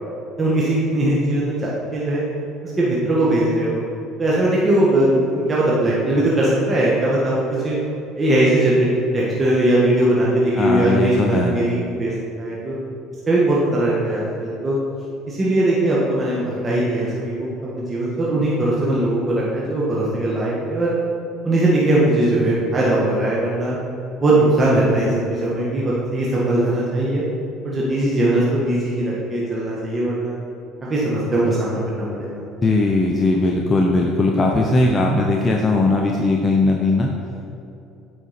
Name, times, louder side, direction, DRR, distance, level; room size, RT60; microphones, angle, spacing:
voice 1, 0.4-2.2 2.8-3.8 4.2-7.8 8.2-8.9 9.1-12.1 12.4-12.7 13.3-14.8 15.3-20.9 21.4-23.8 24.2-27.2 27.6-30.4 30.9-32.4, right 1 dB, 30° right, -6 dB, 1.6 m, -20 dB
voice 2, 10.6-11.5 32.6-37.1, left 2 dB, 25° left, 0 dB, 0.8 m, -18 dB
8.9 x 5.0 x 4.4 m, 2.8 s
hypercardioid pair, 75°, 0 cm